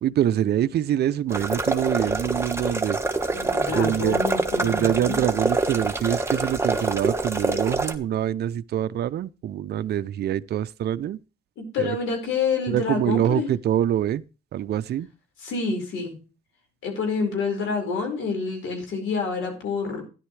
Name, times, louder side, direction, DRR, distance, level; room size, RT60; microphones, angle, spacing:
voice 1, 0.0-3.0 3.7-4.2 4.6-11.2 11.8-12.0 12.7-14.2 14.5-15.1, right 11 dB, 55° right, 0.5 m, -25 dB
sound 1, 1.3-7.9, right 2 dB, 15° right, 1.3 m, -25 dB
voice 2, 3.3-5.3 11.6-13.5 15.4-16.2 16.8-20.0, left 4 dB, 80° left, 4.9 m, -28 dB
13.0 x 10.5 x 3.2 m
cardioid pair, 90°, 20 cm